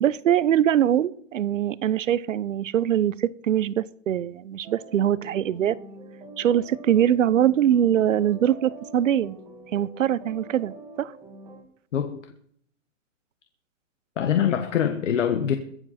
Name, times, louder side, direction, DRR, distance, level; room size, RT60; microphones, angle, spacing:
voice 1, 0.0-5.8 6.4-9.3 9.7-11.1, right 10 dB, 80° right, 0.8 m, -23 dB
sound 1, 4.6-11.6, right 2 dB, 10° right, 1.6 m, -45 dB
voice 2, 11.9-12.3 14.2-15.6, left 9 dB, 75° left, 1.6 m, -24 dB
23.0 x 8.0 x 4.3 m
hypercardioid pair, 170°, 37 cm